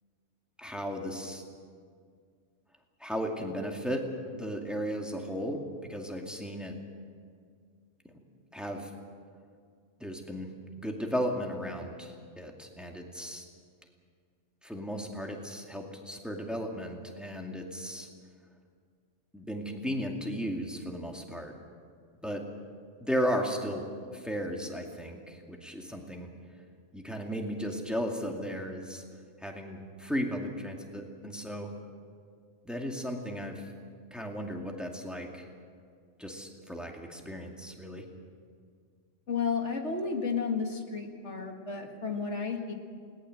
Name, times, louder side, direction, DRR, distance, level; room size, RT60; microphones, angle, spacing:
voice 1, 0.6-1.4 3.0-4.1 4.3-6.7 8.0-8.1 8.5-8.9 10.0-10.5 10.8-13.4 14.6-18.1 19.3-21.5 22.2-22.4 23.0-23.8 24.1-26.3 26.9-29.0 29.4-31.7 32.7-33.7 34.1-35.4 36.2-38.0, equal, ahead, 1 dB, 2.3 m, -35 dB
voice 2, 39.3-42.7, left 5 dB, 65° left, 3 dB, 2.3 m, -32 dB
20.5 x 19.0 x 7.8 m, 2.1 s
omnidirectional pair, 1.3 m